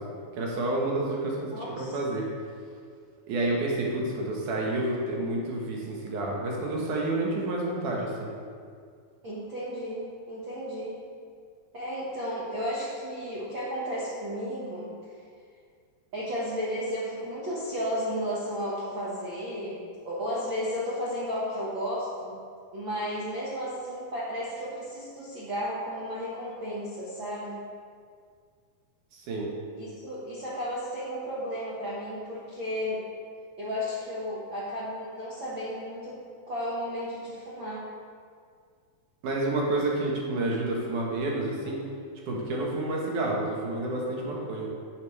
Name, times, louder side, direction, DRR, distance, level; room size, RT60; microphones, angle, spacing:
voice 1, 0.4-2.3 3.3-8.3 29.1-29.5 39.2-41.8 42.3-44.7, right 2 dB, 65° right, -2 dB, 2.3 m, -29 dB
voice 2, 1.5-2.0 9.2-11.0 11.7-15.1 16.1-19.8 20.0-22.4 22.7-27.6 29.8-33.0 33.6-36.2 36.5-37.8, equal, 85° right, -8 dB, 1.0 m, -33 dB
10.5 x 8.1 x 3.3 m, 2.1 s
omnidirectional pair, 4.6 m